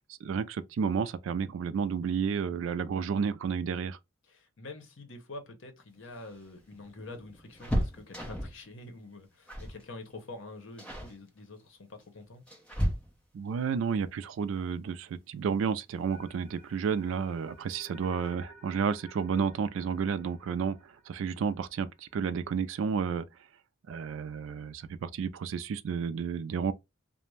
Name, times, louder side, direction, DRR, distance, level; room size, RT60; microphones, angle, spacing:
voice 1, 0.2-4.0 13.3-23.3 23.9-26.7, right 6 dB, 70° right, 0.3 m, -31 dB
voice 2, 4.2-12.4, left 2 dB, 65° left, 0.8 m, -46 dB
sound 1, 6.0-8.7 9.5-9.8 10.1-10.4 10.8-11.2 12.0-13.5 15.2-15.3 15.7-15.8 17.0-17.4 17.7-17.8 18.1-18.3, equal, 5° left, 0.7 m, -34 dB
sound 2, 16.1-22.2, right 1 dB, 35° right, 0.7 m, -55 dB
2.5 x 2.1 x 3.0 m
head